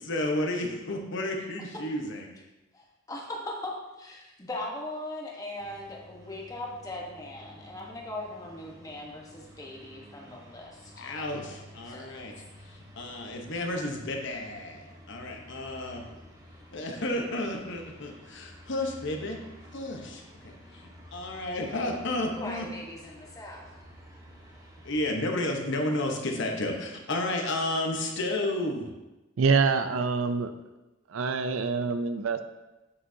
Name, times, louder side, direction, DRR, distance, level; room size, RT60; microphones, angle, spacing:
voice 1, 0.0-2.3 10.9-12.3 12.6-16.0 16.7-19.4 19.7-22.7 24.8-28.9, left 1 dB, 65° left, 2 dB, 1.0 m, -32 dB
voice 2, 2.7-11.3 11.9-12.1 22.4-23.7, left 1 dB, 20° left, -2 dB, 1.1 m, -39 dB
sound 1, 5.6-25.1, equal, 15° right, 1.0 m, -52 dB
voice 3, 29.4-30.5 31.1-32.4, right 4 dB, 85° right, 9 dB, 0.5 m, -25 dB
7.8 x 6.2 x 2.7 m, 1.0 s
head